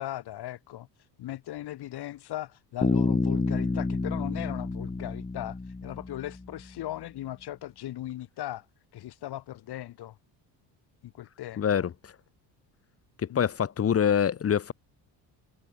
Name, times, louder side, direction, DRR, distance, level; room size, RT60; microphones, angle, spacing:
voice 1, 0.0-8.7 8.9-10.2 11.0-11.8 13.3-13.5, left 14 dB, 65° left, 7.3 m, -38 dB
Bass guitar, 2.8-6.5, left 3 dB, 15° left, 3.6 m, -29 dB
voice 2, 11.6-11.9 13.3-14.7, left 8 dB, 35° left, 1.2 m, -24 dB
cardioid pair, 110°, 42 cm